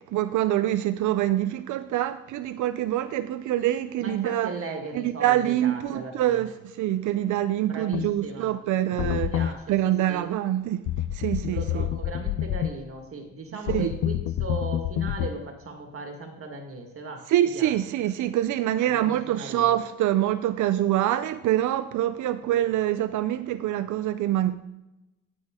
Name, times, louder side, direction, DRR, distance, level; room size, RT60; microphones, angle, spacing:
voice 1, 0.0-4.5 4.9-9.3 9.7-11.9 13.7-13.9 17.3-24.6, right 13 dB, 80° right, 0.6 m, -25 dB
voice 2, 4.0-6.5 7.6-8.5 9.1-10.3 11.5-17.3 17.5-17.7 18.8-19.7, right 3 dB, 45° right, 1.8 m, -37 dB
sound 1, 7.9-8.1 9.0-9.5 10.9-12.7 13.7-15.3, left 12 dB, 75° left, 0.5 m, -28 dB
16.0 x 6.2 x 3.7 m
cardioid pair, 90°, 30 cm